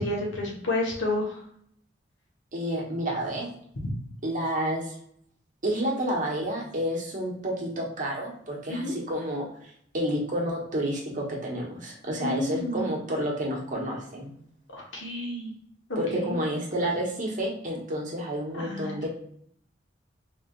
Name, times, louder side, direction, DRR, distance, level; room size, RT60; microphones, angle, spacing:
voice 1, 0.0-1.4 3.8-3.9 8.7-8.9 12.2-12.9 14.7-15.5 15.9-16.4 18.5-19.1, left 1 dB, 90° left, -1 dB, 1.2 m, -30 dB
voice 2, 2.5-3.5 4.2-4.9 5.6-9.4 9.9-14.3 16.0-19.1, equal, 45° right, -2 dB, 1.1 m, -30 dB
3.6 x 3.3 x 2.4 m, 0.67 s
head